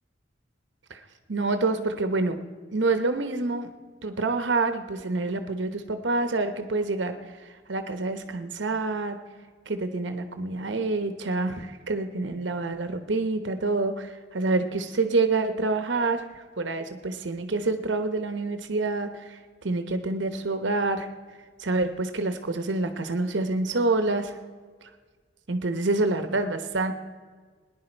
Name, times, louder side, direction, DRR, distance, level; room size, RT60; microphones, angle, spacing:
voice 1, 1.3-2.4 2.7-3.7 4.0-7.4 7.7-9.2 9.7-21.1 21.6-24.4 25.5-26.9, right 3 dB, 80° right, 8 dB, 0.9 m, -27 dB
18.5 x 10.5 x 4.5 m, 1.5 s
head